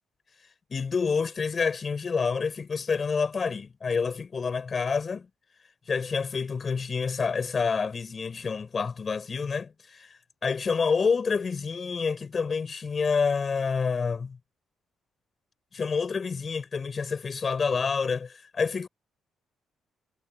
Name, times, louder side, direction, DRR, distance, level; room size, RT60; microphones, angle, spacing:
voice 1, 0.7-5.3 5.9-14.4 15.7-18.9, left 5 dB, 40° left, 7.5 m, -28 dB
cardioid pair, 90°, 0 cm